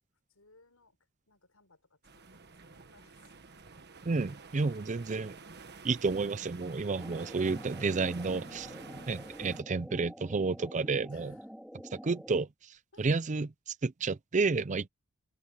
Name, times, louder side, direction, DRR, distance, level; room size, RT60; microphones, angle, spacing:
voice 1, 0.3-1.0 1.3-3.4 4.5-4.9 5.3-5.6 11.1-11.5 12.9-13.2, left 3 dB, 75° left, 6.6 m, -63 dB
sound 1, 2.0-9.6, right 4 dB, 50° right, 1.4 m, -50 dB
voice 2, 4.0-5.4 5.8-8.7 9.1-11.3 11.9-14.9, right 4 dB, 35° right, 0.5 m, -31 dB
sound 2, 7.0-12.4, equal, ahead, 4.0 m, -48 dB
open air
head